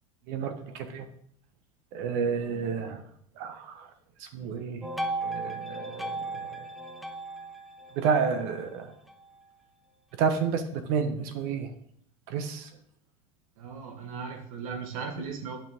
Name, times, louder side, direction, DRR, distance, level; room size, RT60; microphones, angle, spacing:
voice 1, 0.3-1.1 1.9-3.1 3.4-3.9 4.2-4.9 5.2-6.7 7.9-8.9 10.2-11.7 12.3-12.7, right 6 dB, 60° right, 8 dB, 1.2 m, -30 dB
sound 1, 4.8-9.3, right 2 dB, ahead, 0.8 m, -36 dB
voice 2, 13.6-15.6, right 5 dB, 80° right, 4 dB, 1.6 m, -37 dB
8.7 x 5.8 x 3.6 m, 0.66 s
supercardioid pair, 110°, 18 cm